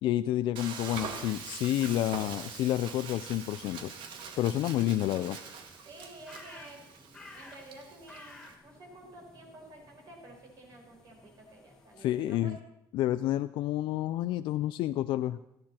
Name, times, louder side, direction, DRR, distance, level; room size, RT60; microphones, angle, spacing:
voice 1, 0.0-3.9 4.4-5.4 12.0-12.6 12.9-15.4, left 13 dB, 70° left, 11 dB, 0.4 m, -29 dB
Frying (food), 0.6-8.6, right 6 dB, 65° right, 1.8 m, -43 dB
sound 1, 3.0-12.4, left 2 dB, 5° left, 1.7 m, -55 dB
voice 2, 5.8-6.8 7.3-12.6, right 1 dB, 45° right, 0 dB, 5.6 m, -51 dB
18.0 x 14.5 x 4.4 m, 0.82 s
cardioid pair, 160°, 9 cm